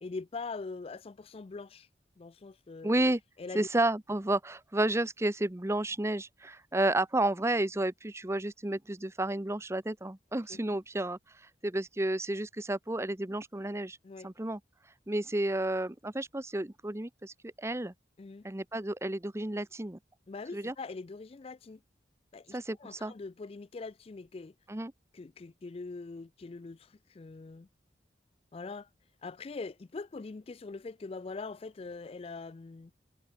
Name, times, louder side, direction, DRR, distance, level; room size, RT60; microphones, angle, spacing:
voice 1, 0.0-1.9 2.2-3.0 3.4-3.7 10.5-10.6 14.0-14.3 18.2-18.5 20.3-21.8 22.3-24.5 25.1-27.7 28.5-28.9 29.2-32.9, left 4 dB, 35° left, 0.4 m, -42 dB
voice 2, 2.8-3.2 3.5-11.2 11.6-14.0 14.2-14.6 15.1-17.9 18.4-20.0 20.5-20.7 22.5-23.1 24.7-24.9, right 1 dB, 15° right, 0.8 m, -31 dB
head